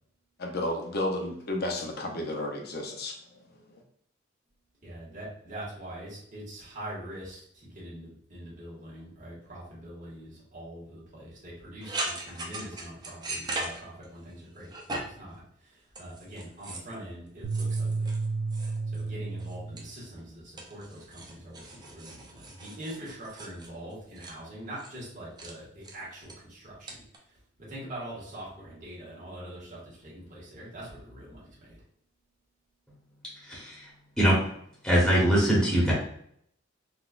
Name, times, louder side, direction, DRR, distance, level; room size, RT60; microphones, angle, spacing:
voice 1, 0.4-3.2, left 1 dB, 55° left, 2 dB, 0.6 m, -32 dB
voice 2, 4.8-18.1 18.9-27.0 27.7-31.8, right 1 dB, 40° right, -7 dB, 1.4 m, -43 dB
sound 1, 11.8-14.3 14.6-15.3 15.9-16.9 17.5-19.1 19.4-20.2 20.6-24.3 24.8-25.0 25.4-25.5 25.8-26.3 26.9-27.2, right 2 dB, 20° right, 0.5 m, -39 dB
sound 2, 17.4-19.9, right 3 dB, 70° right, 0.4 m, -31 dB
voice 3, 33.4-33.9 34.2-34.4 34.8-35.9, right 1 dB, 5° left, -7 dB, 0.9 m, -22 dB
4.0 x 2.3 x 2.4 m, 0.68 s
head